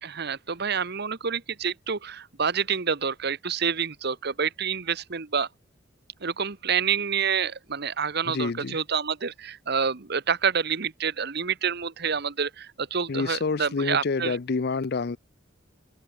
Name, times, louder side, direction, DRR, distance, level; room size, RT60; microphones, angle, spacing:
voice 1, 0.0-5.5 6.2-14.4, right 6 dB, 55° right, 1.1 m, -28 dB
voice 2, 8.3-8.8 13.1-15.2, left 4 dB, 55° left, 0.5 m, -28 dB
open air
head